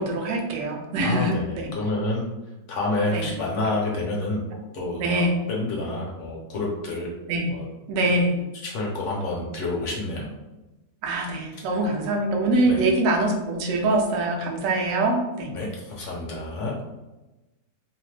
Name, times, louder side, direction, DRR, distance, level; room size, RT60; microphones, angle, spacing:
voice 1, 0.0-1.7 3.1-3.3 5.0-5.4 7.3-7.5 7.9-8.4 11.0-15.5, right 2 dB, 70° right, 1 dB, 0.9 m, -24 dB
voice 2, 1.0-2.3 2.7-4.4 4.7-5.2 5.5-7.1 7.4-7.7 8.6-10.3 12.7-12.8 15.5-16.7, left 2 dB, 60° left, -2 dB, 0.9 m, -28 dB
2.9 x 2.0 x 3.1 m, 1.1 s
omnidirectional pair, 1.6 m